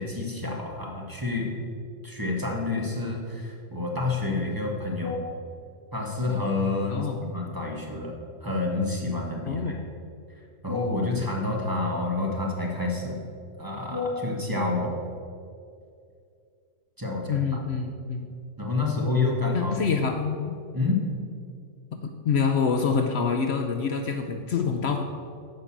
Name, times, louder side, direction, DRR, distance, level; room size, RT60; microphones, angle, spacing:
voice 1, 0.0-1.5 2.0-5.3 5.9-9.8 10.6-13.2 13.6-14.9 17.0-17.5 18.6-19.7 20.7-21.1 24.8-24.9, left 3 dB, 15° right, -2 dB, 1.4 m, -28 dB
voice 2, 9.5-9.8 17.3-18.3 19.5-20.6 21.9-25.0, left 5 dB, 60° left, 5 dB, 0.8 m, -26 dB
9.2 x 5.3 x 7.3 m, 2.4 s
omnidirectional pair, 1.3 m